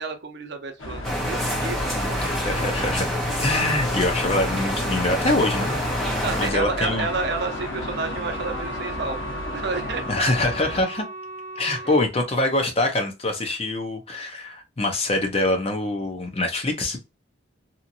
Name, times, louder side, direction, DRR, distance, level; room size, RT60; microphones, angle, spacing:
voice 1, 0.0-2.2 6.2-9.2 9.5-10.0 11.8-11.9, right 4 dB, 55° right, 0.6 m, -30 dB
sound 1, 0.8-10.8, left 2 dB, 80° left, 0.8 m, -33 dB
sound 2, 1.0-6.5, equal, ahead, 0.8 m, -27 dB
voice 2, 1.9-3.0 3.4-5.8 6.1-7.1 10.1-11.1 11.6-17.0, left 2 dB, 30° left, 0.6 m, -24 dB
Wind instrument woodwind instrument, 6.2-12.0, right 1 dB, 20° right, 1.2 m, -37 dB
2.8 x 2.5 x 2.5 m
head